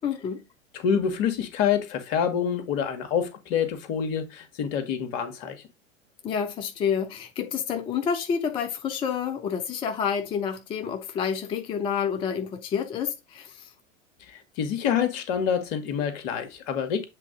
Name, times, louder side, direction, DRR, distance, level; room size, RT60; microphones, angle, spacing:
voice 1, 0.0-0.4 6.2-13.7, left 7 dB, 15° left, 0.4 m, -29 dB
voice 2, 0.7-5.6 14.3-17.1, left 8 dB, 50° left, 1.5 m, -27 dB
7.5 x 3.7 x 3.7 m
figure-of-eight pair, 90°, 40 cm